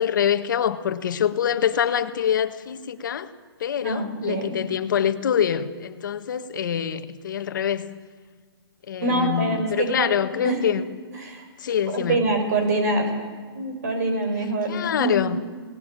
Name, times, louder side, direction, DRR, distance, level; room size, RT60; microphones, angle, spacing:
voice 1, 0.0-3.3 3.6-7.9 8.9-10.8 11.6-12.3 14.7-15.4, left 9 dB, 50° left, 1.6 m, -25 dB
voice 2, 3.8-4.6 9.0-10.2 10.4-10.6 11.1-11.4 11.9-13.1 13.5-15.3, right 2 dB, 40° right, 6.3 m, -25 dB
28.0 x 19.5 x 9.0 m
hypercardioid pair, 175°, 14 cm